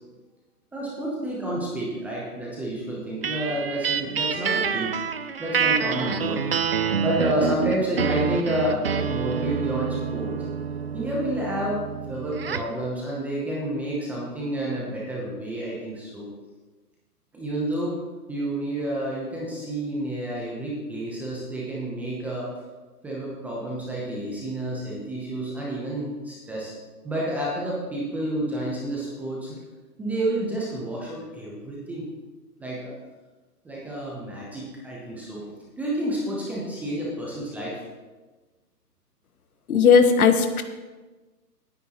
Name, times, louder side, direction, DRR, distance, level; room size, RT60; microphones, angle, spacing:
voice 1, 0.7-5.0 5.4-6.4 7.0-10.3 10.9-11.8 12.1-16.3 17.3-18.0 18.3-22.5 23.0-26.7 27.0-29.6 30.0-32.1 32.6-32.9 33.6-35.4 35.8-37.8, right 1 dB, 5° right, -5 dB, 0.7 m, -29 dB
sound 1, 3.2-12.8, right 6 dB, 40° right, 0.4 m, -27 dB
voice 2, 39.7-40.6, left 6 dB, 60° left, 8 dB, 1.4 m, -17 dB
18.0 x 9.7 x 3.0 m, 1.2 s
hypercardioid pair, 145°, 48 cm